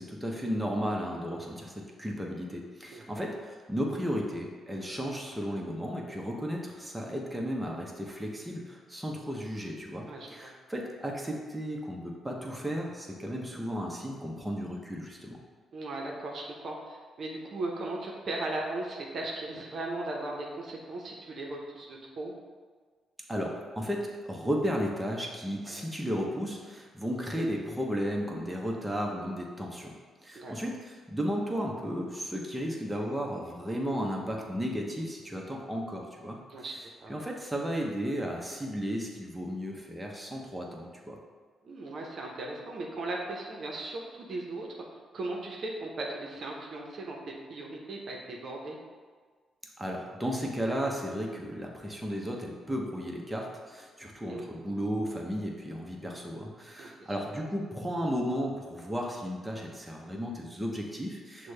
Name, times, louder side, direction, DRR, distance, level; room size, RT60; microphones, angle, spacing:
voice 1, 0.0-15.4 23.3-29.9 30.2-36.4 37.1-41.2 49.8-61.5, equal, 10° right, -1 dB, 0.8 m, -34 dB
voice 2, 2.9-3.2 10.1-10.5 15.7-22.3 25.6-25.9 30.3-30.5 36.5-36.7 37.0-37.2 41.6-44.7 45.1-47.2 47.5-48.8 54.3-54.5 56.8-57.2 61.4-61.5, right 2 dB, 60° right, -1 dB, 0.7 m, -37 dB
6.1 x 2.2 x 3.3 m, 1.5 s
hypercardioid pair, 50°, 0 cm